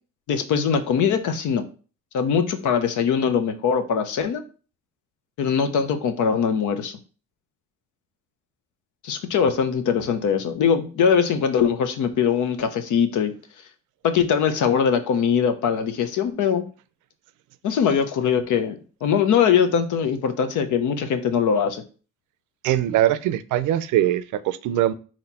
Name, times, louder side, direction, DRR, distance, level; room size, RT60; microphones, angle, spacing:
voice 1, 0.3-1.6 2.1-4.4 5.4-6.9 9.0-13.3 14.0-16.6 17.6-21.8, left 7 dB, 80° left, 0.8 m, -22 dB
voice 2, 22.6-24.9, right 12 dB, 80° right, 0.5 m, -22 dB
4.2 x 3.1 x 4.0 m
cardioid pair, 90°, 30 cm